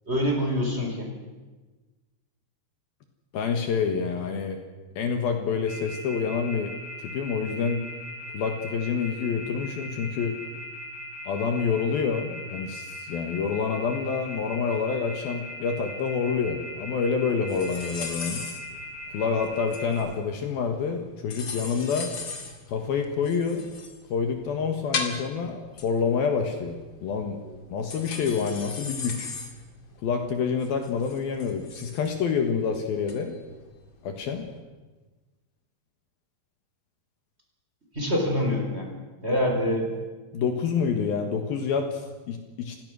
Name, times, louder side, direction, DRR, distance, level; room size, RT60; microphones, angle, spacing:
voice 1, 0.1-1.1 37.9-38.9 39.2-39.9, equal, 15° right, 0 dB, 4.3 m, -25 dB
voice 2, 3.3-4.6 5.0-6.7 7.0-7.9 8.3-10.4 11.3-18.4 19.1-22.1 22.7-23.7 24.1-27.4 27.7-29.3 30.0-33.4 34.0-34.5 40.3-42.8, left 6 dB, 65° left, 4 dB, 3.1 m, -27 dB
Telephone, 5.7-20.0, left 2 dB, 15° left, 8.1 m, -39 dB
sound 1, 17.5-34.5, left 5 dB, 40° left, 2.0 m, -38 dB
29.5 x 16.5 x 6.4 m, 1.3 s
omnidirectional pair, 4.9 m